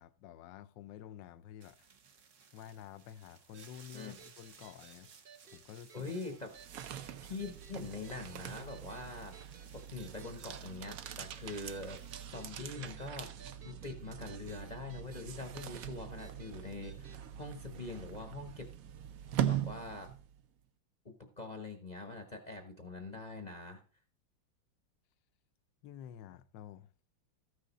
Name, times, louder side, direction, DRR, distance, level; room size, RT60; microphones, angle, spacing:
voice 1, 0.0-1.9 2.5-6.2 25.8-26.9, left 10 dB, 75° left, 1.3 m, -51 dB
sound 1, 1.6-12.3, right 6 dB, 50° right, 1.1 m, -60 dB
sound 2, 3.5-17.2, right 6 dB, 85° right, 0.4 m, -59 dB
voice 2, 5.9-6.5 7.2-9.4 9.7-12.0 12.3-13.3 13.6-18.7 19.4-20.1 21.0-23.8, left 3 dB, 30° left, 0.8 m, -44 dB
sound 3, 6.4-20.4, right 10 dB, 65° right, 0.9 m, -42 dB
14.0 x 6.5 x 4.1 m
omnidirectional pair, 2.1 m